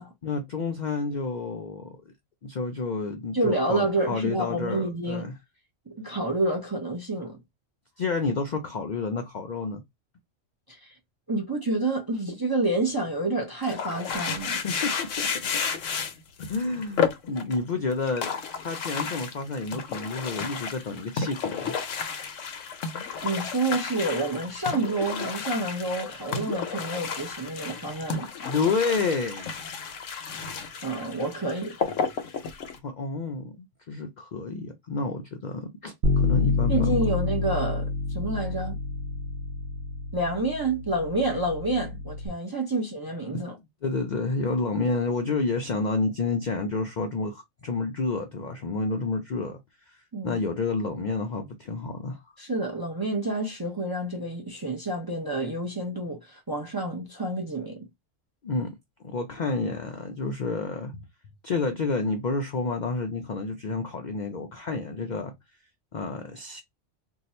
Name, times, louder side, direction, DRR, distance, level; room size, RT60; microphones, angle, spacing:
voice 1, 0.2-2.1 2.4-5.3 8.0-9.8 14.2-15.3 16.4-18.3 18.6-21.7 28.1-29.8 32.8-36.7 43.3-43.4 43.8-49.6 49.9-50.0 50.2-52.2 58.4-58.7 59.0-61.0 61.4-65.3 65.9-66.6, left 3 dB, 60° left, 0.5 m, -30 dB
voice 2, 3.3-5.3 5.9-7.4 10.7-11.0 11.3-14.6 23.2-28.3 30.3-30.5 30.8-31.8 36.7-38.8 40.1-43.6 50.1-50.4 52.4-57.9, right 2 dB, 25° right, 0.5 m, -29 dB
sound 1, 13.6-17.6 17.9-32.8, left 6 dB, 80° left, 1.0 m, -32 dB
Bass guitar, 36.0-42.3, left 3 dB, 65° right, 1.0 m, -28 dB
2.7 x 2.3 x 4.1 m
omnidirectional pair, 1.3 m